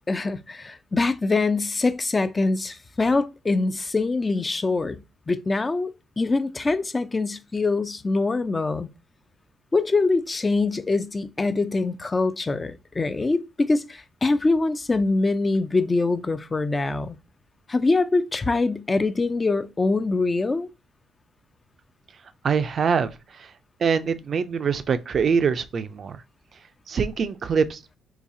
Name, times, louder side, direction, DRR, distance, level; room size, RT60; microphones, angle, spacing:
voice 1, 0.1-5.0 5.3-5.9 6.2-8.9 9.7-17.2 17.7-20.7, left 3 dB, 30° left, 0.4 m, -24 dB
voice 2, 22.4-23.1 23.4-23.5 23.8-26.2 26.9-27.8, right 6 dB, 55° right, 0.4 m, -23 dB
3.9 x 2.3 x 2.6 m
supercardioid pair, 65°, 0 cm